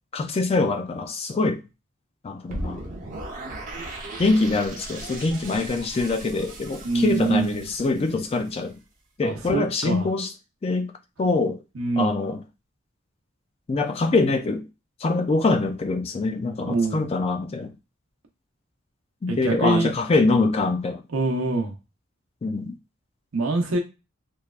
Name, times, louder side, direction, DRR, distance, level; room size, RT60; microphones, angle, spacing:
voice 1, 0.1-1.6 2.2-2.9 4.2-8.8 9.2-10.3 10.6-10.9 11.2-11.6 12.0-12.4 13.7-14.7 15.0-17.7 19.2-21.0 22.4-22.8, left 3 dB, 30° left, 0.3 m, -24 dB
sound 1, 2.5-8.5, right 1 dB, 40° right, 0.7 m, -37 dB
voice 2, 6.8-7.6 9.2-10.1 11.8-12.1 16.6-17.0 19.3-19.9 21.1-21.7 23.3-23.8, right 3 dB, 75° right, 0.8 m, -24 dB
3.1 x 2.1 x 2.4 m
head